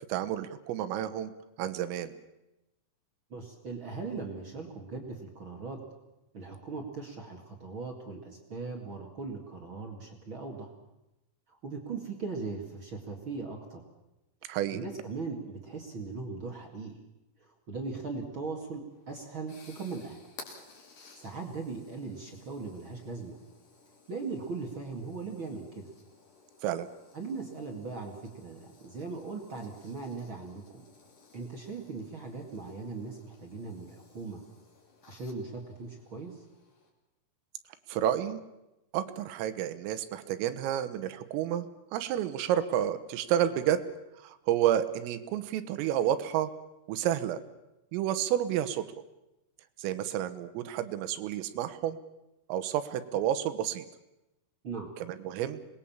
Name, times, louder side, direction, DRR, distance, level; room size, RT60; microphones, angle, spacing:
voice 1, 0.1-1.3 1.6-2.2 14.5-14.8 26.6-26.9 37.9-38.4 38.9-41.7 41.9-43.8 44.2-46.5 46.9-47.4 47.9-48.9 49.8-52.0 52.5-53.9 55.0-55.6, right 11 dB, 85° right, 12 dB, 3.8 m, -30 dB
voice 2, 3.3-5.8 6.3-10.7 11.5-13.8 14.7-17.0 17.4-20.2 21.1-23.4 24.1-25.9 27.1-30.9 31.3-34.4 35.1-36.4 54.6-54.9, right 4 dB, 50° right, 1 dB, 1.5 m, -39 dB
sound 1, 18.9-36.9, left 4 dB, 45° left, 4.1 m, -57 dB
26.5 x 20.0 x 7.3 m, 0.94 s
omnidirectional pair, 5.9 m